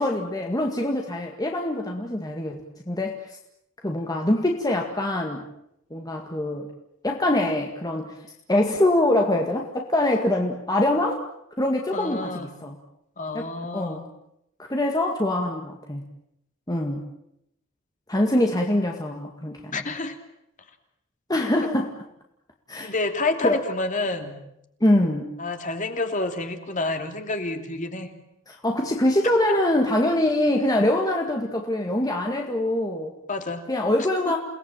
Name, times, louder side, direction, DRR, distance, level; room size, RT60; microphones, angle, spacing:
voice 1, 0.0-2.6 2.9-3.4 3.8-5.4 5.9-6.7 7.0-8.2 8.5-11.2 11.6-12.8 13.3-13.5 13.7-14.0 14.7-16.0 16.7-17.0 18.1-19.8 21.3-21.9 22.7-22.9 23.4-23.6 24.8-25.3 28.5-33.1 33.7-34.4, left 1 dB, 20° left, 1 dB, 2.0 m, -24 dB
voice 2, 11.9-12.5 13.2-14.0 19.7-20.2 22.8-24.3 25.4-28.1 29.5-29.6 33.3-33.6 34.3-34.4, left 2 dB, 40° left, 5 dB, 3.0 m, -28 dB
29.0 x 18.5 x 9.0 m, 0.80 s
head